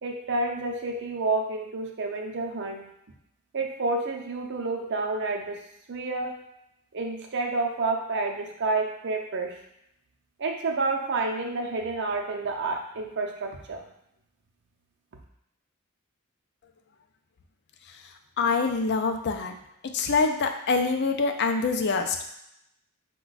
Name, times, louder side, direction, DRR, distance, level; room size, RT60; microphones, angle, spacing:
voice 1, 0.0-2.8 3.5-5.6 5.9-6.4 6.9-9.5 10.4-13.9, right 3 dB, 55° right, 1 dB, 0.6 m, -29 dB
voice 2, 18.4-19.5 19.9-22.3, left 4 dB, 50° left, 5 dB, 0.5 m, -25 dB
5.6 x 2.3 x 4.0 m, 0.80 s
head